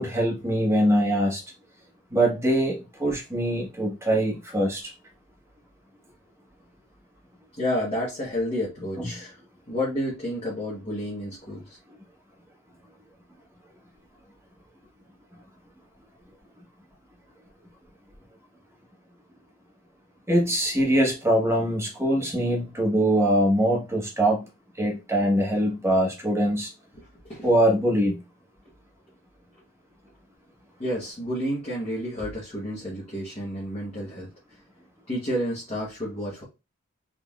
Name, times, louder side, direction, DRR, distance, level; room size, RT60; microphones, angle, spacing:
voice 1, 0.0-1.4 2.1-4.9 9.0-9.1 20.3-24.5 24.8-26.7 27.4-28.2, right 1 dB, 10° right, 1.1 m, -23 dB
voice 2, 7.6-9.4 9.7-11.8 26.9-27.5 30.8-34.3 35.1-36.4, equal, 30° left, 1.1 m, -30 dB
3.8 x 3.3 x 2.3 m
head